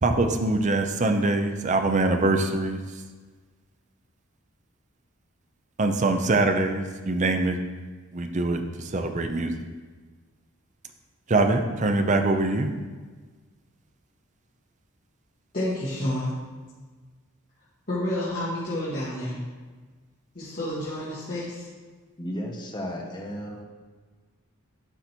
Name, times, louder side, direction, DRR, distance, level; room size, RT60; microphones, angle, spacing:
voice 1, 0.0-2.8 5.8-7.6 8.1-8.6 8.9-9.5 11.3-12.7, right 2 dB, 35° right, 0.6 m, -23 dB
voice 2, 15.5-16.3 17.9-19.4 20.3-21.7, left 1 dB, 40° left, 2.0 m, -29 dB
voice 3, 22.2-23.6, equal, 20° left, 0.9 m, -34 dB
11.5 x 4.1 x 4.4 m
head